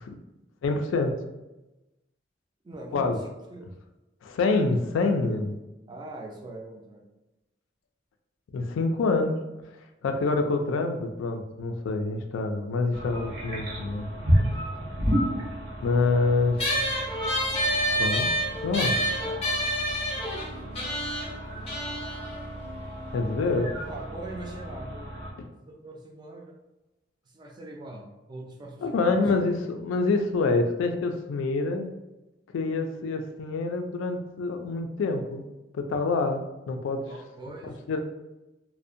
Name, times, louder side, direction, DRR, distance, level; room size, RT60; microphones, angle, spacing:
voice 1, 0.6-1.1 2.9-3.2 4.2-5.6 8.5-9.4 10.0-14.1 15.8-16.6 18.0-18.3 18.6-19.0 23.1-23.7 25.4-25.5 28.8-31.9 32.5-35.4 35.7-36.4 36.7-37.0 37.6-38.0, left 3 dB, 85° left, 6 dB, 0.3 m, -26 dB
voice 2, 2.6-3.7 5.9-7.0 23.9-25.1 25.6-26.6 27.3-29.3 37.0-38.0, right 2 dB, 25° right, 1 dB, 0.3 m, -42 dB
sound 1, 12.9-25.3, equal, 85° right, 0.8 m, -32 dB
sound 2, 16.6-23.4, equal, 30° left, 0.6 m, -29 dB
2.5 x 2.0 x 2.5 m, 1.0 s
head